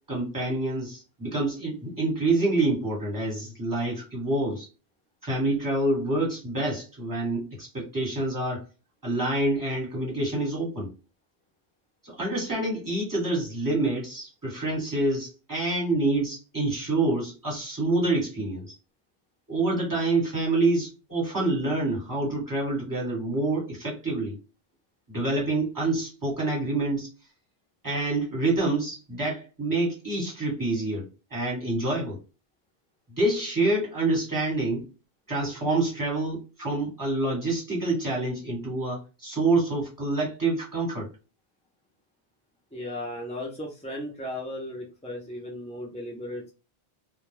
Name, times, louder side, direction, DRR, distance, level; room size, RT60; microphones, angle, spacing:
voice 1, 0.1-4.7 5.2-8.6 9.0-10.9 12.0-18.7 19.5-24.4 25.1-27.1 27.8-32.2 33.2-34.8 35.3-41.1, right 2 dB, 20° right, 1.3 m, -27 dB
voice 2, 42.7-46.5, left 1 dB, 10° left, 0.4 m, -36 dB
2.2 x 2.2 x 3.1 m
omnidirectional pair, 1.1 m